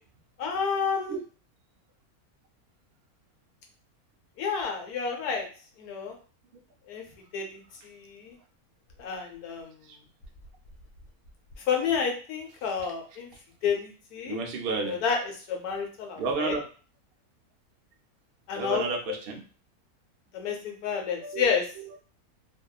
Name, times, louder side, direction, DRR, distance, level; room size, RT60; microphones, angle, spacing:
voice 1, 0.4-1.1 4.4-5.5 5.8-6.1 6.9-7.0 7.3-8.3 9.0-9.7 11.7-13.3 13.6-14.4 14.8-15.2 15.5-16.5 18.5-18.8 20.3-21.6, left 6 dB, 80° left, 2 dB, 1.1 m, -30 dB
voice 2, 14.3-15.0 16.2-16.7 18.5-19.4 21.2-21.5, right 4 dB, 80° right, 2 dB, 0.5 m, -31 dB
2.7 x 2.2 x 2.2 m, 0.39 s
omnidirectional pair, 1.6 m